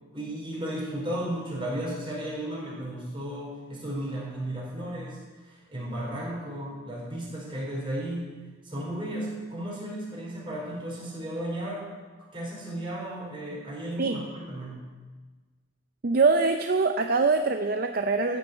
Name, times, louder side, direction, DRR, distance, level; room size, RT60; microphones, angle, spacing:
voice 1, 0.1-8.3 8.6-11.9 12.3-14.8, right 1 dB, 25° right, -4 dB, 4.5 m, -34 dB
voice 2, 16.0-18.4, right 4 dB, 50° right, 6 dB, 0.5 m, -23 dB
13.5 x 7.0 x 8.1 m, 1.3 s
head